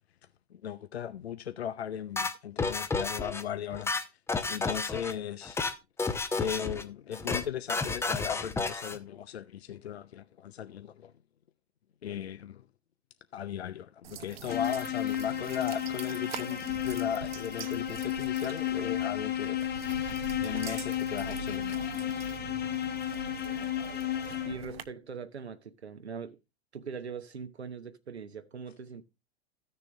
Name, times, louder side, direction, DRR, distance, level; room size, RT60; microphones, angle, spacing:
voice 1, 0.5-3.9 4.4-5.6 6.3-11.1 12.0-12.7 13.3-19.6 20.4-21.7, left 9 dB, 70° left, 0.7 m, -37 dB
sound 1, 2.2-3.4 3.7-5.1 5.4-5.7 6.0-6.8 7.1-7.4 7.7-9.0, left 3 dB, 10° left, 0.8 m, -31 dB
sound 2, 14.0-24.8, right 9 dB, 65° right, 0.8 m, -44 dB
sound 3, 14.5-24.8, left 11 dB, 30° left, 1.4 m, -33 dB
voice 2, 24.4-26.4 26.7-29.0, right 5 dB, 80° right, 1.1 m, -41 dB
14.5 x 6.8 x 3.3 m
figure-of-eight pair, 95°, 32 cm